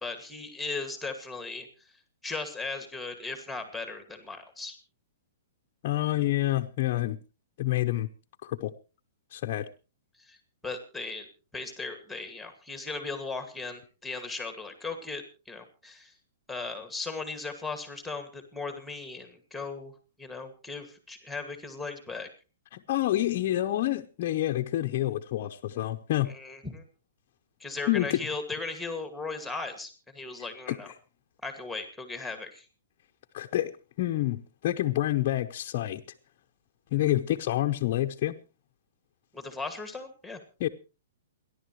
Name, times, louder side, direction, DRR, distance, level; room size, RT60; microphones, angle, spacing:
voice 1, 0.0-1.7 2.2-4.8 10.2-10.4 10.6-11.3 11.5-16.1 16.5-19.9 20.2-22.3 26.3-26.8 27.6-30.9 31.4-32.7 39.3-40.4, left 3 dB, ahead, 7 dB, 2.2 m, -37 dB
voice 2, 5.8-7.2 7.6-8.1 8.4-8.7 9.3-9.6 22.7-26.3 27.9-28.2 30.7-30.8 33.3-33.7 34.0-36.0 36.9-38.3 40.6-40.7, left 14 dB, 45° left, 2 dB, 0.8 m, -28 dB
28.5 x 11.0 x 3.2 m, 0.32 s
hypercardioid pair, 150°, 0 cm